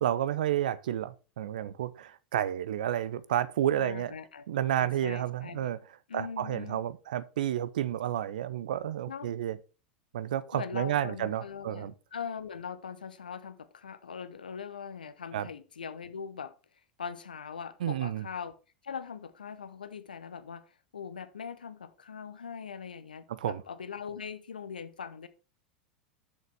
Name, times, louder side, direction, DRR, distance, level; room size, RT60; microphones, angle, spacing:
voice 1, 0.0-4.1 4.5-5.8 6.1-9.6 10.1-11.9 15.3-15.5 17.8-18.3 23.3-23.6, right 11 dB, 65° right, 0.6 m, -31 dB
voice 2, 3.8-4.5 4.8-5.7 6.1-6.8 9.1-9.3 10.5-16.5 17.0-18.6 18.8-25.3, left 6 dB, 75° left, 0.8 m, -41 dB
6.6 x 6.5 x 4.7 m
figure-of-eight pair, 85°, 5 cm